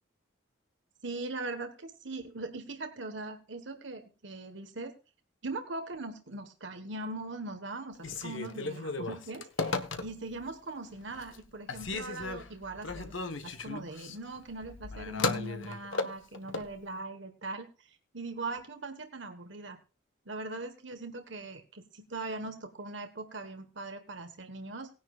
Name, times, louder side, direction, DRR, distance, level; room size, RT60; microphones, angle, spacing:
voice 1, 1.0-4.9 5.4-13.2 13.4-19.8 20.2-24.9, right 2 dB, 65° right, 6 dB, 1.5 m, -40 dB
Telephone, 8.0-10.4 10.9-11.4 11.7-16.7, left 3 dB, 75° left, 1.3 m, -35 dB
19.0 x 10.0 x 2.5 m, 0.34 s
head